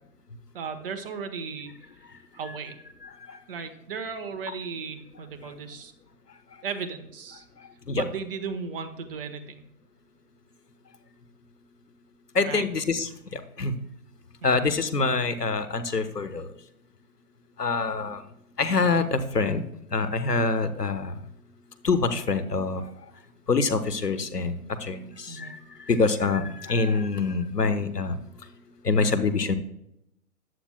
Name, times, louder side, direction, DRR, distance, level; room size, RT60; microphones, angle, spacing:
voice 1, 0.5-1.7 2.3-2.8 3.5-5.9 6.6-7.4 7.9-9.6 12.4-12.7 14.4-14.7 25.3-25.6, right 5 dB, 35° right, 8 dB, 1.2 m, -36 dB
voice 2, 12.3-13.7 14.4-16.5 17.6-18.2 18.6-19.6 19.9-21.1 21.8-22.8 23.5-25.6 25.9-28.2 28.8-29.6, left 4 dB, 90° left, 10 dB, 1.2 m, -25 dB
14.0 x 9.9 x 2.2 m, 0.79 s
figure-of-eight pair, 130°, 46 cm